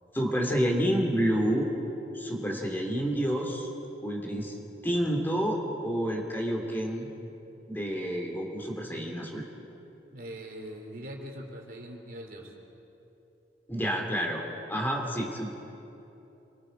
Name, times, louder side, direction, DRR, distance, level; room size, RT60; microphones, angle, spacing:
voice 1, 0.1-1.7 2.1-3.7 4.0-4.6 4.8-7.1 7.7-9.5 13.7-14.4 14.7-15.5, equal, 10° left, 1 dB, 2.8 m, -29 dB
voice 2, 10.1-12.5, equal, 55° right, 1 dB, 3.2 m, -42 dB
28.0 x 23.0 x 5.1 m, 3.0 s
head